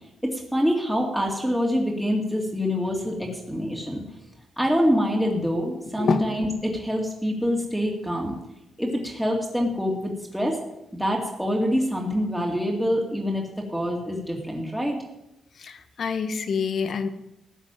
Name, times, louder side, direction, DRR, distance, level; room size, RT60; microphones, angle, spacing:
voice 1, 0.2-4.0 4.6-8.4 8.8-10.6 10.9-15.0, equal, ahead, -1 dB, 2.4 m, -25 dB
voice 2, 15.6-17.1, left 5 dB, 60° left, 9 dB, 1.2 m, -26 dB
14.0 x 5.9 x 9.0 m, 0.89 s
cardioid pair, 95°, 0 cm